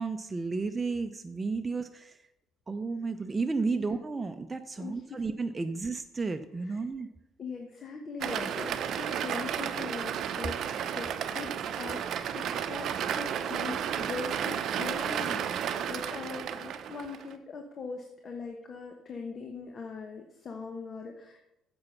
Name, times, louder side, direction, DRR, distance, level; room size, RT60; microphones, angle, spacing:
voice 1, 0.0-2.2 2.7-7.1, right 4 dB, 25° right, 7 dB, 0.7 m, -32 dB
voice 2, 4.8-5.2 6.6-6.8 7.4-21.4, left 4 dB, 45° left, 3 dB, 1.3 m, -41 dB
sound 1, 8.2-17.3, right 8 dB, 60° right, 0.7 m, -33 dB
8.7 x 7.0 x 5.8 m, 0.90 s
hypercardioid pair, 60°, 0 cm